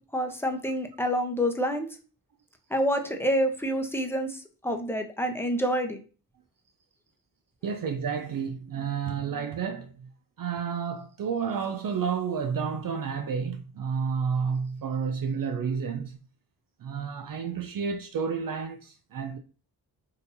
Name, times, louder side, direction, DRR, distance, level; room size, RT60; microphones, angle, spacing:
voice 1, 0.0-1.9 2.7-6.0, equal, 5° left, 0.7 m, -28 dB
voice 2, 7.6-10.1 10.4-16.2 16.8-19.4, right 6 dB, 50° right, 0.5 m, -30 dB
3.9 x 2.7 x 2.6 m
cardioid pair, 45°, 43 cm